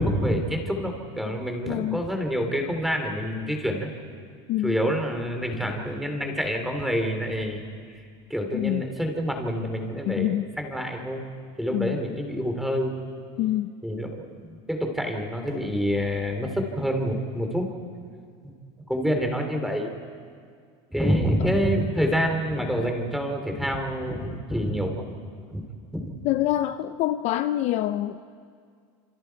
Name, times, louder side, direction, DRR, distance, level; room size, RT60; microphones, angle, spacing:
voice 1, 0.0-3.9 4.6-7.6 8.3-11.3 11.6-12.9 13.8-17.7 18.4-18.5 18.9-19.9 20.9-25.1 25.5-25.6 25.9-26.1, equal, ahead, 3 dB, 2.9 m, -27 dB
voice 2, 1.7-2.0 4.5-4.9 8.5-8.8 10.1-10.5 11.7-12.0 13.4-13.7 26.2-28.2, left 14 dB, 45° left, 11 dB, 0.6 m, -26 dB
28.5 x 27.5 x 4.6 m, 2.2 s
cardioid pair, 150°, 15 cm